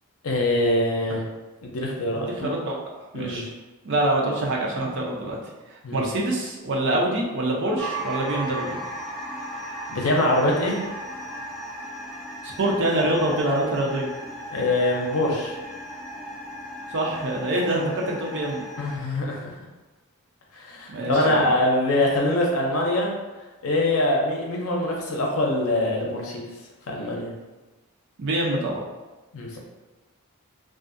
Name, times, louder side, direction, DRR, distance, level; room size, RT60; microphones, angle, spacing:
voice 1, 0.2-1.2 1.6-2.5 3.1-3.4 5.8-6.0 9.9-10.8 14.5-15.6 18.8-19.6 20.5-23.1 23.6-26.4 26.9-27.3 29.3-29.6, left 1 dB, 75° left, -1 dB, 0.6 m, -24 dB
voice 2, 2.2-2.8 3.1-3.5 3.8-5.4 5.7-8.8 12.4-14.1 16.9-18.6 20.9-21.5 28.2-28.8, right 1 dB, 55° right, -2 dB, 0.5 m, -25 dB
sound 1, 7.8-19.0, right 1 dB, ahead, 0.4 m, -36 dB
2.5 x 2.4 x 2.5 m, 1.1 s
head